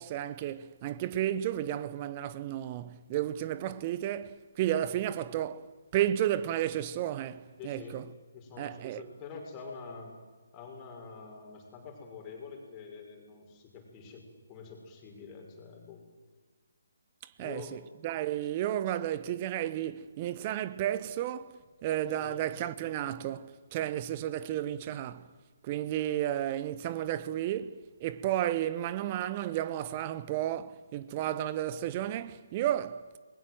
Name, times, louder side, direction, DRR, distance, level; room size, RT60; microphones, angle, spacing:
voice 1, 0.0-5.7 5.9-8.1 8.6-9.1 17.2-25.3 25.6-33.2, right 12 dB, 30° right, 1.0 m, -32 dB
voice 2, 7.6-8.0 8.3-10.1 10.5-16.0 17.4-17.8 22.2-22.5, left 5 dB, 20° left, 5.9 m, -46 dB
29.0 x 21.5 x 7.9 m
figure-of-eight pair, 140°, 0 cm